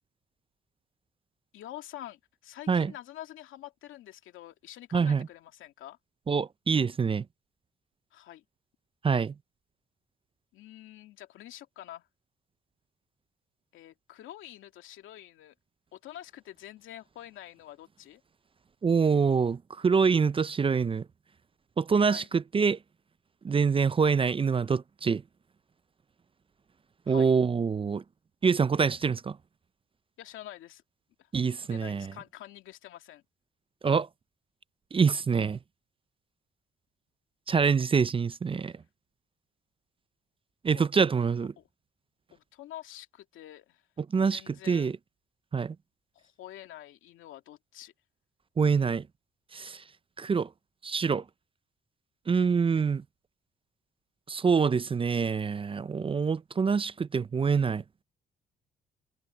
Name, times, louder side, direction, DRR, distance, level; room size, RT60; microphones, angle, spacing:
voice 1, 1.5-6.0 8.1-8.4 10.5-12.1 13.7-15.6 15.9-18.2 22.1-22.3 27.1-27.3 30.2-30.8 31.2-31.3 31.7-33.2 40.7-40.9 41.6-41.7 42.3-43.8 44.3-44.9 46.1-47.9, left 13 dB, 85° left, 2.4 m, -47 dB
voice 2, 4.9-5.3 6.3-7.2 9.0-9.3 18.8-21.0 21.8-22.8 23.4-25.2 27.1-28.0 28.4-29.4 31.3-32.1 33.8-34.1 34.9-35.6 37.5-38.7 40.6-41.5 44.1-44.9 45.5-45.8 48.6-49.1 49.5-49.8 50.2-50.5 50.8-51.2 52.3-53.0 54.3-57.8, right 5 dB, 25° right, 0.5 m, -25 dB
cardioid pair, 90°, 20 cm